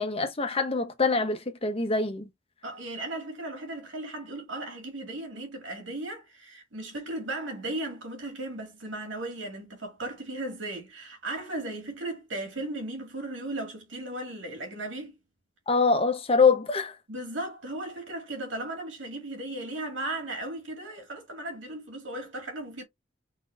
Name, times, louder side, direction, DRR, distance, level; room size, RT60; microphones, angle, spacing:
voice 1, 0.0-2.3 15.7-17.0, left 4 dB, 30° left, 1.0 m, -24 dB
voice 2, 2.6-15.2 17.1-22.8, right 2 dB, 85° right, 2.1 m, -36 dB
3.9 x 3.9 x 2.6 m
head